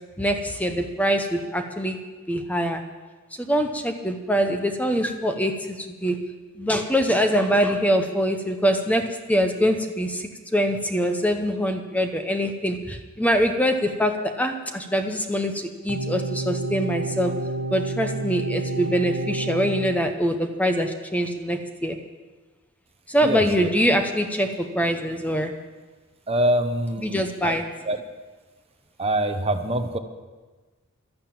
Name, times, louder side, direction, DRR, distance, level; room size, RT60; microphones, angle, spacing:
voice 1, 0.2-2.0 2.3-2.8 3.4-6.2 6.6-17.3 17.7-22.0 23.1-25.5 27.0-27.6, equal, 5° left, 6 dB, 0.8 m, -24 dB
sound 1, 15.9-20.0, right 2 dB, 70° right, 1.0 m, -29 dB
voice 2, 23.2-23.7 26.3-27.6 27.8-28.0 29.0-30.0, right 1 dB, 25° right, 8 dB, 0.9 m, -24 dB
12.0 x 12.0 x 8.7 m, 1.3 s
head